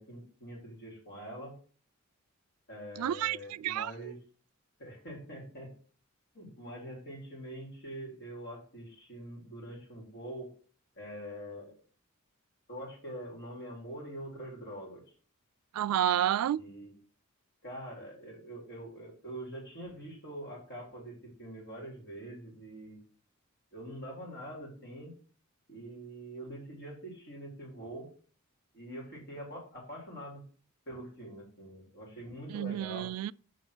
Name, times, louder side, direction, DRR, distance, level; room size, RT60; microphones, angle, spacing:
voice 1, 0.0-1.5 2.7-4.2 4.8-5.7 6.3-10.5 11.0-11.7 12.7-15.0 16.6-16.9 17.6-23.0 23.7-25.1 25.7-28.1 28.7-30.4 30.9-33.1, right 1 dB, 50° left, 3.8 m, -44 dB
voice 2, 3.0-3.9 15.7-16.6 32.5-33.3, right 11 dB, 80° right, 0.3 m, -30 dB
6.5 x 5.2 x 6.1 m
head